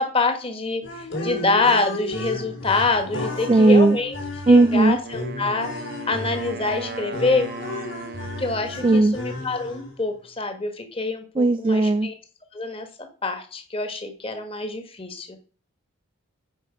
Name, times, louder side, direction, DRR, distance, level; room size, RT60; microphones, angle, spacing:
voice 1, 0.0-4.2 4.5-5.7 6.1-7.5 8.4-12.1 12.5-12.9 13.2-15.4, left 3 dB, 25° left, 6 dB, 1.4 m, -25 dB
sound 1, 0.8-10.1, left 2 dB, 65° left, 3.5 m, -33 dB
voice 2, 3.5-4.0 4.5-5.0 8.8-9.2 11.4-12.1, right 2 dB, 25° right, 11 dB, 0.3 m, -16 dB
Wind instrument woodwind instrument, 5.0-9.2, right 4 dB, 50° right, 0.7 m, -38 dB
9.0 x 5.5 x 5.1 m, 0.39 s
head